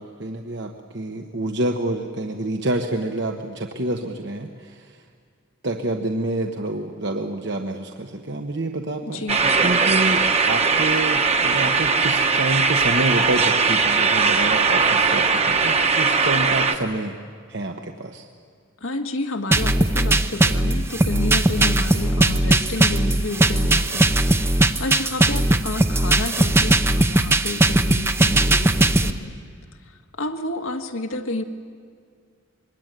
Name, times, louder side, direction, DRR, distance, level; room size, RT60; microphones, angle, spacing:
voice 1, 0.0-4.8 5.6-17.2 17.5-18.2, right 1 dB, 60° right, 3 dB, 1.3 m, -27 dB
voice 2, 9.1-9.4 18.8-24.1 24.4-29.3 29.9-31.4, left 2 dB, 85° left, 5 dB, 1.9 m, -30 dB
sound 1, 9.3-16.8, right 4 dB, 30° right, 1.3 m, -19 dB
sound 2, 19.5-29.1, right 1 dB, 10° right, 0.7 m, -19 dB
25.5 x 22.0 x 9.2 m, 2.1 s
head